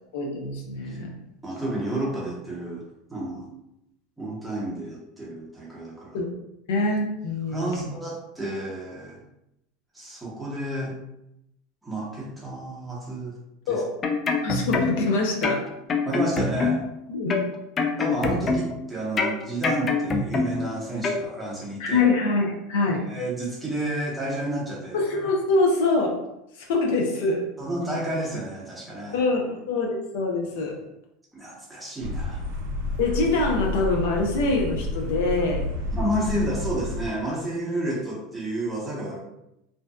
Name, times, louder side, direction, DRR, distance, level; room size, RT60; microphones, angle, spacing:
voice 1, 0.1-1.1 6.1-6.3 6.7-7.9 13.7-13.9 14.4-15.6 17.1-17.4 21.8-23.0 24.9-26.2 26.5-27.5 29.1-29.9 30.1-30.8 33.0-35.7, left 3 dB, 80° left, 0 dB, 0.5 m, -24 dB
voice 2, 1.4-3.5 4.2-6.2 7.5-9.2 9.9-11.0 11.8-13.4 13.7-13.8 16.0-16.8 18.0-22.1 22.9-25.0 27.6-29.2 31.3-32.4 35.9-39.2, right 1 dB, 5° right, -6 dB, 0.8 m, -31 dB
sound 1, 13.8-15.1 15.4-17.0 17.3-18.8 19.2-20.7 21.0-21.2, left 4 dB, 30° left, 0.3 m, -25 dB
sound 2, 32.0-37.1, left 2 dB, 85° right, 0.4 m, -30 dB
2.6 x 2.1 x 2.3 m, 0.83 s
supercardioid pair, 130°, 0 cm